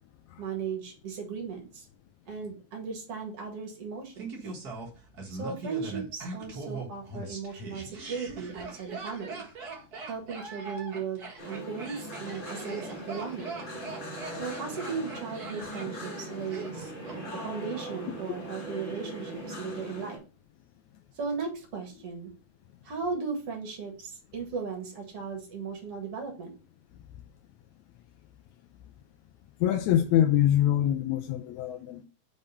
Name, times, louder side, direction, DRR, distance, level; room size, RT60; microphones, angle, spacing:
voice 1, 0.4-1.9 2.3-4.3 5.3-9.4 10.1-13.6 14.4-20.2 21.2-22.3 22.8-26.5, right 5 dB, 55° right, 2.1 m, -37 dB
Laughter, 4.2-17.2 17.4-17.5, right 3 dB, 40° right, 1.5 m, -41 dB
sound 1, 11.4-20.2, equal, 40° left, 0.7 m, -40 dB
voice 2, 29.6-32.0, left 11 dB, 80° left, 1.8 m, -24 dB
5.3 x 3.6 x 5.5 m
omnidirectional pair, 3.5 m